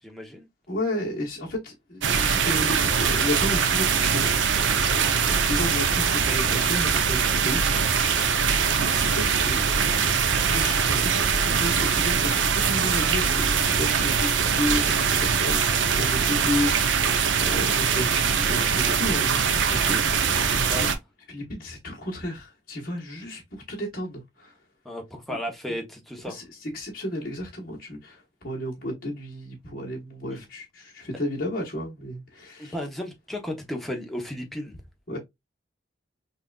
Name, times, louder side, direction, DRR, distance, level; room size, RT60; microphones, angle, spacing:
voice 1, 0.0-0.5 8.5-8.7 20.7-20.9 24.8-26.4 30.3-30.4 32.6-34.8, equal, ahead, 0.8 m, -34 dB
voice 2, 0.7-4.5 5.5-8.1 8.8-9.6 10.5-11.2 11.4-20.9 21.3-24.6 25.7-25.8 26.3-32.8 35.1-35.2, left 1 dB, 50° left, 1.3 m, -32 dB
sound 1, 2.0-21.0, right 6 dB, 80° right, 0.6 m, -22 dB
5.7 x 2.5 x 2.3 m
head